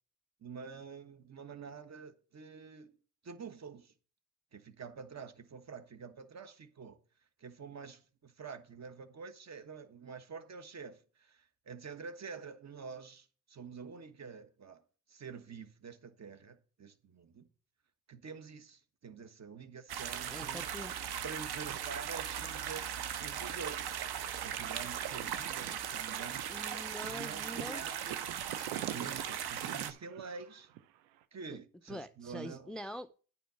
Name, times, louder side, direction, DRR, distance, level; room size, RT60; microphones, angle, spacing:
voice 1, 0.4-3.0 3.2-3.9 4.5-7.0 7.4-14.8 15.1-17.5 18.1-20.7 21.2-24.0 24.4-26.4 27.1-28.3 28.9-30.7 31.3-32.7, right 5 dB, 35° right, 1.3 m, -47 dB
sound 1, 19.9-29.9, right 9 dB, 60° right, 1.1 m, -38 dB
voice 2, 20.3-20.9 26.5-27.8 31.5-31.6 31.9-33.2, equal, ahead, 0.4 m, -44 dB
sound 2, 21.9-31.2, right 12 dB, 85° right, 0.8 m, -48 dB
9.2 x 5.4 x 5.7 m
supercardioid pair, 60°, 44 cm